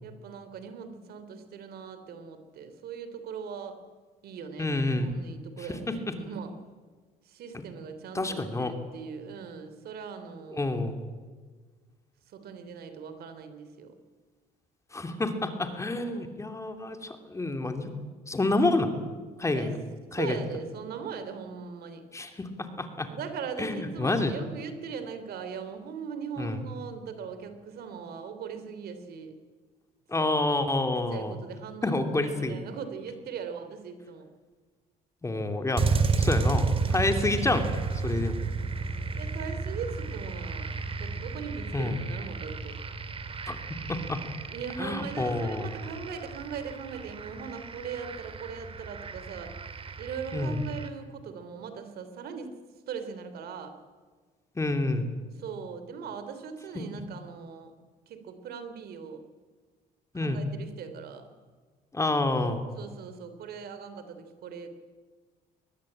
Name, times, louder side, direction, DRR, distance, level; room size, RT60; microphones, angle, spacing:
voice 1, 0.0-3.8 4.2-6.5 7.3-10.6 12.3-13.9 19.5-19.8 20.1-22.0 23.1-29.4 30.2-30.3 31.1-34.3 36.8-37.4 39.1-42.8 44.5-49.5 50.0-52.5 52.9-53.7 55.4-57.7 58.1-59.2 60.1-61.3 62.8-64.7, right 6 dB, 65° right, 9 dB, 3.2 m, -40 dB
voice 2, 4.6-5.1 5.6-5.9 7.5-7.6 8.1-8.7 10.5-11.0 14.9-17.9 18.3-18.9 19.4-19.8 20.1-20.4 22.1-23.1 23.6-24.3 26.4-26.6 30.1-31.4 31.8-32.6 35.2-37.7 38.0-38.4 41.7-42.0 43.5-43.6 43.9-44.2 44.8-45.7 50.3-50.6 54.6-55.1 60.1-60.4 61.9-62.7, left 2 dB, 15° left, 6 dB, 2.8 m, -28 dB
sound 1, 35.8-50.9, right 4 dB, 35° right, 2.3 m, -32 dB
23.0 x 20.0 x 8.8 m, 1.5 s
cardioid pair, 110°, 17 cm